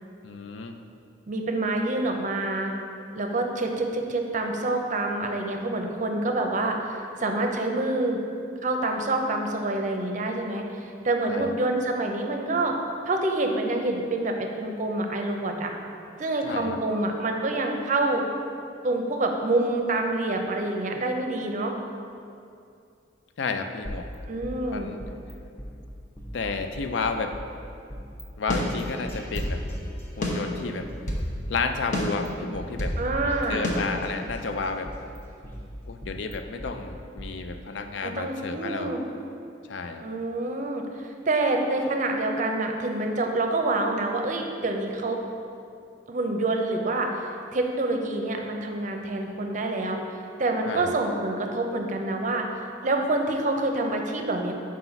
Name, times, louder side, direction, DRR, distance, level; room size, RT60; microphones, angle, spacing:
voice 1, 0.2-0.8 11.3-11.5 16.4-16.8 23.4-24.1 24.7-25.0 26.3-27.3 28.4-29.6 30.2-30.9 31.5-33.0 33.5-34.9 35.9-38.9 39.7-40.1 50.7-50.9, left 4 dB, 75° left, 7 dB, 0.4 m, -31 dB
voice 2, 1.3-2.7 3.1-8.2 8.6-12.8 13.1-15.7 16.2-18.2 18.8-21.7 24.3-24.9 33.0-33.6 38.0-39.0 40.0-45.2 46.1-54.5, right 2 dB, 45° right, 3 dB, 0.5 m, -27 dB
sound 1, 23.8-25.3 25.6-25.7 26.2-27.4 27.9-28.2 28.5-30.3 30.8-32.3 32.5-32.6 33.1-34.5 34.8-36.7 37.2-37.3, equal, 15° left, 0.7 m, -39 dB
sound 2, 28.5-29.6 30.2-31.3 31.9-33.0 33.6-33.7, left 1 dB, 45° left, 0.8 m, -29 dB
4.9 x 4.0 x 5.7 m, 2.5 s
head